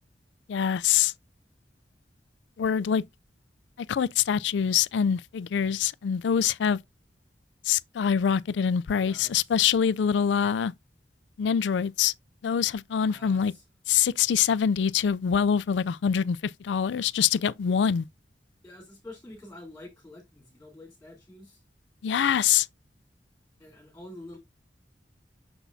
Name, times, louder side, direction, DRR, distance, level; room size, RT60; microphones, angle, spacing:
voice 1, 0.5-1.1 2.6-3.0 3.9-6.8 7.7-10.7 11.4-12.1 12.4-13.5 13.9-18.1 22.0-22.7, left 8 dB, 90° left, 0.4 m, -24 dB
voice 2, 8.9-9.5 13.0-13.6 18.6-21.6 22.2-22.5 23.6-24.4, left 1 dB, 15° left, 3.4 m, -47 dB
6.8 x 6.1 x 2.6 m
head